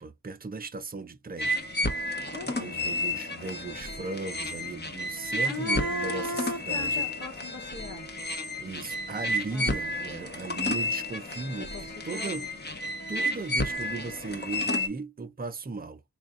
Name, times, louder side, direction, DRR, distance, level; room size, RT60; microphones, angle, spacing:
voice 1, 0.0-1.5 2.4-7.1 8.6-11.7 12.0-12.5 13.1-16.0, right 3 dB, 20° right, 0.7 m, -37 dB
sound 1, 1.4-14.9, left 1 dB, 25° left, 1.0 m, -31 dB
voice 2, 2.3-2.9 5.2-8.1 9.5-9.8 11.6-12.5, left 1 dB, 45° left, 1.3 m, -37 dB
3.7 x 2.5 x 3.6 m
supercardioid pair, 45°, 40 cm